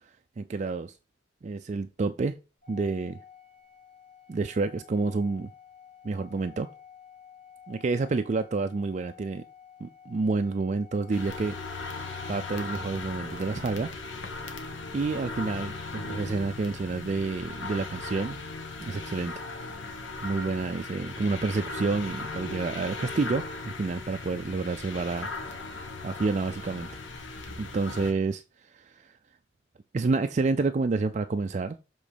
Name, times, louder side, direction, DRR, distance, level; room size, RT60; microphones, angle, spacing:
voice 1, 0.4-0.9 1.4-2.4 2.7-3.2 4.3-5.5 6.0-6.7 7.7-9.4 9.8-11.5 12.3-14.3 14.9-18.4 18.8-19.3 20.2-25.3 26.0-26.9 27.6-28.4 28.7-29.1 29.9-31.8, right 3 dB, 40° right, 0.4 m, -29 dB
Organ, 2.6-13.5, left 8 dB, 50° left, 2.4 m, -52 dB
sound 1, 11.1-28.1, left 3 dB, 80° left, 1.3 m, -38 dB
7.4 x 3.8 x 5.0 m
head